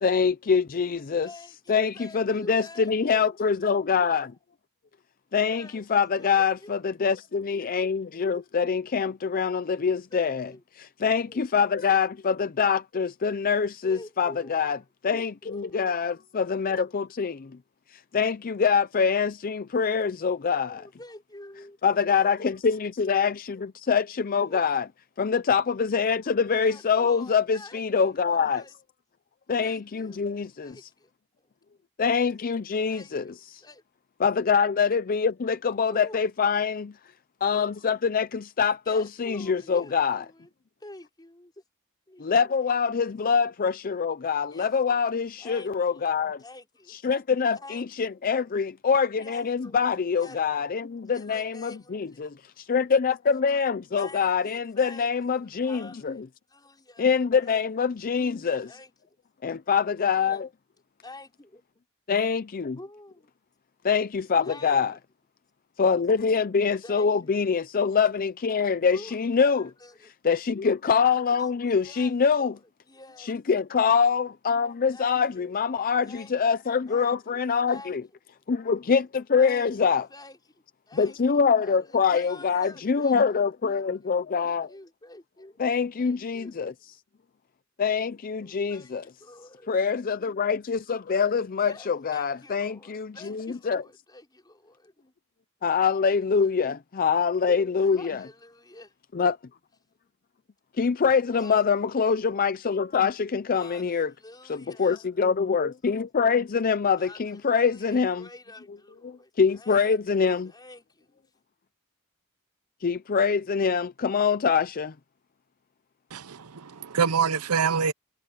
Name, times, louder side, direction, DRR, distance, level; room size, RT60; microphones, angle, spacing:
voice 1, 0.0-1.3 1.7-4.3 5.3-10.5 10.8-14.8 15.0-17.6 17.9-20.8 21.8-24.8 25.2-28.6 29.5-30.8 32.0-33.2 33.5-33.6 34.2-36.9 37.4-40.2 42.2-46.4 46.9-56.3 57.0-58.7 59.4-60.5 62.1-62.8 63.8-64.9 65.8-69.7 70.2-72.6 73.2-78.0 78.5-80.1 80.9-84.7 85.6-86.7 87.8-89.0 89.7-93.8 95.6-98.3 99.1-99.4 100.8-104.1 104.5-108.3 109.0-110.5 112.8-114.9, left 6 dB, 40° left, 0.5 m, -25 dB
voice 2, 1.0-3.4 5.5-5.8 6.2-6.8 10.1-10.6 11.3-11.4 13.8-14.8 15.1-15.8 20.4-22.1 22.3-22.6 24.4-24.6 26.6-28.7 29.5-30.2 30.6-31.1 31.4-31.5 32.9-33.8 35.9-36.2 38.8-40.5 40.8-41.5 42.1-42.6 44.5-47.0 47.5-48.0 49.2-49.9 50.2-50.8 51.1-52.3 54.0-56.2 56.5-57.1 57.4-57.6 58.0-58.1 58.6-58.9 60.1-60.5 61.0-61.6 62.8-63.3 64.4-65.0 66.8-67.4 68.9-70.1 71.3-73.3 74.9-75.5 76.0-76.3 76.9-77.4 77.7-78.0 79.3-80.4 80.9-81.2 81.6-83.9 84.4-85.6 86.0-86.5 88.4-89.7 91.6-95.1 96.2-96.6 97.5-98.9 101.3-101.7 103.5-105.1 106.9-110.0 110.4-111.2, left 2 dB, 20° left, 4.4 m, -48 dB
voice 3, 116.1-117.9, right 6 dB, 80° right, 0.7 m, -25 dB
head